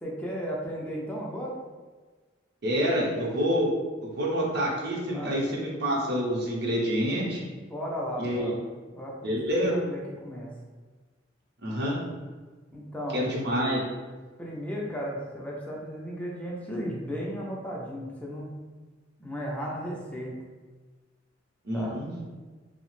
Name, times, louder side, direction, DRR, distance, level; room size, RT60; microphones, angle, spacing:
voice 1, 0.0-1.6 5.1-5.3 7.4-10.5 12.7-13.2 14.4-18.5 19.2-20.4 21.7-22.0, equal, 10° left, -4 dB, 0.4 m, -35 dB
voice 2, 2.6-3.7 4.0-7.4 8.2-8.5 9.2-9.7 11.6-12.0 13.1-13.8 21.7-22.1, equal, 60° right, -2 dB, 0.7 m, -27 dB
2.7 x 2.0 x 3.0 m, 1.3 s
head